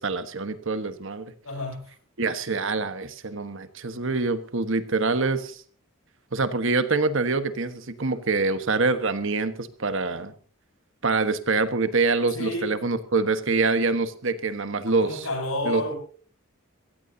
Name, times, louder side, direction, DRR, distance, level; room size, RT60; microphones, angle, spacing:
voice 1, 0.0-1.3 2.2-5.6 6.3-10.3 11.0-15.3 15.6-15.8, right 3 dB, 60° right, 11 dB, 1.3 m, -25 dB
voice 2, 1.4-1.9 12.3-12.7 15.0-15.9, left 1 dB, 70° left, 2 dB, 7.9 m, -30 dB
23.5 x 16.5 x 2.8 m, 0.40 s
head